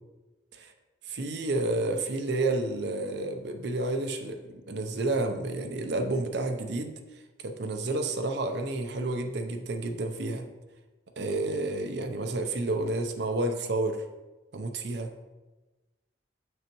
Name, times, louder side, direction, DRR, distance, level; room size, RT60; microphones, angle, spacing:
voice 1, 1.1-7.0 7.4-10.5 11.2-14.0 14.5-15.1, right 2 dB, 55° right, 5 dB, 0.6 m, -30 dB
6.3 x 6.2 x 3.0 m, 1.2 s
head